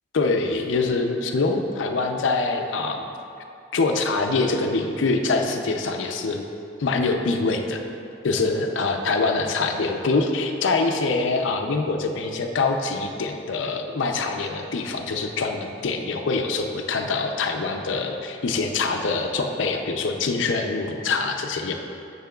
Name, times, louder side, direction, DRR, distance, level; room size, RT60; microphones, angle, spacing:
voice 1, 0.1-3.1 3.7-6.4 6.8-7.8 8.2-21.7, left 3 dB, 70° left, 4 dB, 0.5 m, -24 dB
10.0 x 6.7 x 2.3 m, 2.6 s
head